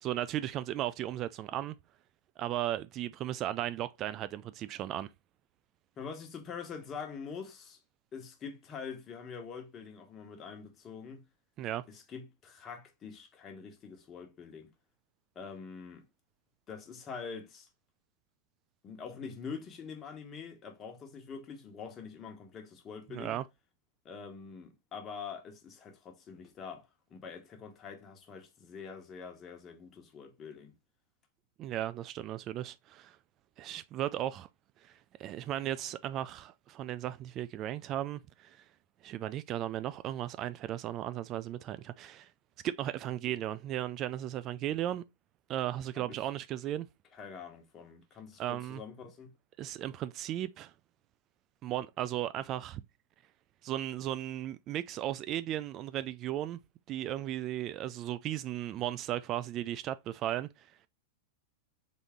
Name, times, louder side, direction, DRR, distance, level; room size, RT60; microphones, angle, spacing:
voice 1, 0.0-1.8 2.4-5.1 11.6-11.8 23.1-23.4 31.6-33.2 33.6-34.5 34.8-38.6 39.0-42.3 42.6-45.0 45.5-46.9 48.4-48.8 49.6-50.7 51.6-52.8 53.6-56.6 56.9-60.7, right 12 dB, 40° right, 0.3 m, -36 dB
voice 2, 6.0-7.8 8.1-11.3 11.9-14.7 15.3-16.0 16.7-17.7 18.8-23.4 24.0-30.7 45.9-46.3 47.1-49.3, left 6 dB, 30° left, 1.2 m, -45 dB
3.8 x 3.6 x 3.5 m
hypercardioid pair, 110°, 0 cm